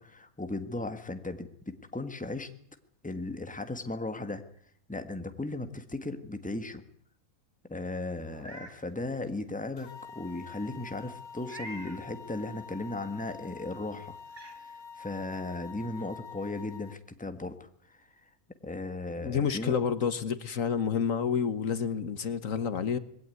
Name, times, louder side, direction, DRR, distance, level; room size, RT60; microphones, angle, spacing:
voice 1, 0.0-2.5 3.0-4.4 4.9-6.8 7.7-14.2 14.4-14.7 15.0-18.1 18.6-19.7, left 2 dB, 5° left, 9 dB, 1.5 m, -36 dB
Meow, 8.2-8.8 9.3-9.4 11.4-12.0 13.6-13.7 14.3-14.6, right 1 dB, 40° right, 3.0 m, -45 dB
sound 1, 9.8-17.0, left 5 dB, 85° left, 1.8 m, -47 dB
voice 2, 19.2-23.0, left 7 dB, 65° left, 13 dB, 1.6 m, -29 dB
21.0 x 17.0 x 9.4 m, 0.66 s
omnidirectional pair, 1.5 m